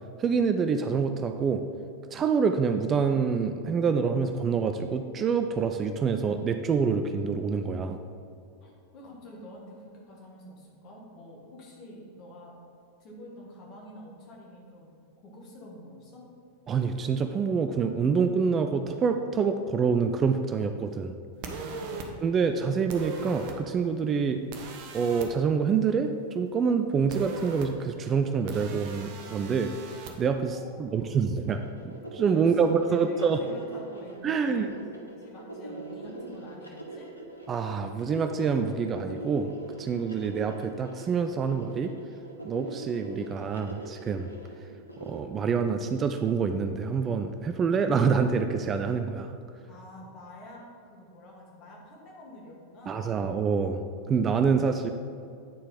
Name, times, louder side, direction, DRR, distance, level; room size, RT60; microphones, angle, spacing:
voice 1, 0.2-1.6 2.1-8.0 16.7-21.1 22.2-24.4 24.9-29.7 30.2-33.4 34.2-34.7 37.5-39.5 39.8-41.9 42.4-44.3 45.0-49.4 52.9-54.9, right 5 dB, 25° right, 7 dB, 0.3 m, -26 dB
voice 2, 8.6-12.6 13.0-14.9 15.2-16.2 21.7-22.1 30.5-31.2 32.4-37.1 49.7-53.1, left 1 dB, 40° left, -2 dB, 1.7 m, -47 dB
sound 1, 21.4-22.1 22.9-23.6 24.5-25.3 27.1-27.7 28.5-30.1, right 5 dB, 45° right, 0.8 m, -39 dB
sound 2, 31.5-45.2, right 2 dB, 90° right, 0.9 m, -42 dB
8.9 x 4.2 x 3.8 m, 2.5 s
figure-of-eight pair, 90°, 0 cm